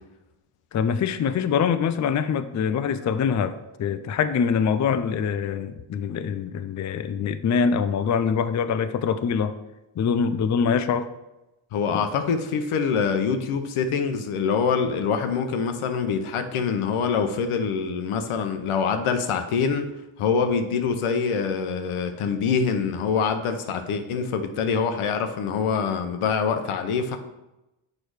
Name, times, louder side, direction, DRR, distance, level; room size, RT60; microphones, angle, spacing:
voice 1, 0.7-9.5 10.0-11.1 11.9-12.0, left 6 dB, 35° left, 11 dB, 0.5 m, -24 dB
voice 2, 11.7-19.9 20.2-27.2, left 6 dB, 80° left, 7 dB, 0.9 m, -25 dB
6.6 x 4.8 x 4.8 m, 0.97 s
cardioid pair, 70°, 50 cm